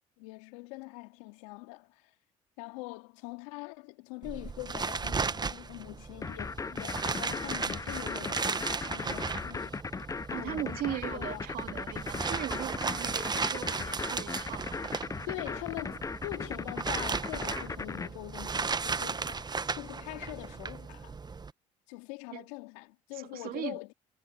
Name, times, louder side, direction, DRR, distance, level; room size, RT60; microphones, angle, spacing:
voice 1, 0.2-2.1 2.6-9.8 10.3-11.5 15.3-21.1 21.9-23.9, left 26 dB, 80° left, 2.6 m, -43 dB
sound 1, 4.2-21.5, right 4 dB, 25° right, 1.1 m, -36 dB
sound 2, 6.2-18.1, left 4 dB, 20° left, 0.5 m, -37 dB
voice 2, 10.3-15.4 22.3-22.4 23.1-23.8, right 12 dB, 60° right, 3.2 m, -39 dB
hypercardioid pair, 60°, 17 cm